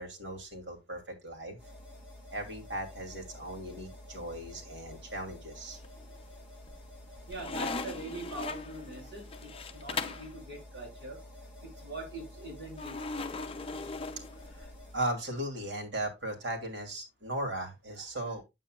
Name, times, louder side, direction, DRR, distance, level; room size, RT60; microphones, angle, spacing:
voice 1, 0.0-1.6 2.3-5.8 14.5-18.4, right 1 dB, 80° right, 2.8 m, -37 dB
sound 1, 1.6-15.0, left 1 dB, 5° right, 3.4 m, -50 dB
sound 2, 5.6-6.2 6.6-10.3 12.8-14.8, left 4 dB, 30° left, 0.6 m, -39 dB
voice 2, 7.3-11.2 11.8-13.0, right 2 dB, 65° right, 6.0 m, -43 dB
8.9 x 7.8 x 2.4 m
head